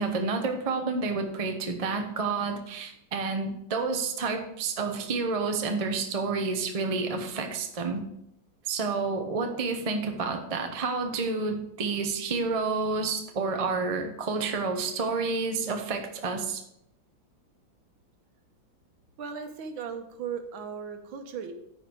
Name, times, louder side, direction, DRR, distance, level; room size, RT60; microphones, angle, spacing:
voice 1, 0.0-8.0 8.7-16.6, right 4 dB, 40° right, 5 dB, 0.5 m, -29 dB
voice 2, 19.2-21.5, right 6 dB, 80° right, 7 dB, 1.7 m, -37 dB
9.7 x 4.9 x 4.5 m, 0.79 s
omnidirectional pair, 2.1 m